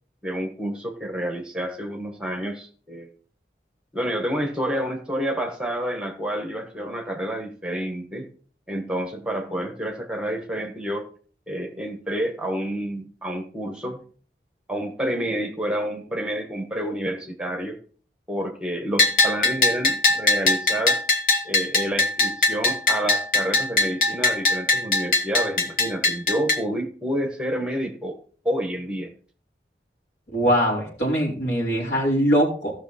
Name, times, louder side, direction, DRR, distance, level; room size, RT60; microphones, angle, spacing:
voice 1, 0.2-3.1 3.9-8.3 8.7-11.1 11.5-14.0 14.7-17.8 18.3-21.0 21.4-29.1, equal, 5° right, 3 dB, 1.2 m, -29 dB
Bell, 19.0-26.6, left 2 dB, 50° left, 1.3 m, -21 dB
voice 2, 30.3-32.7, equal, 80° left, -4 dB, 4.7 m, -22 dB
15.0 x 6.2 x 4.2 m, 0.43 s
head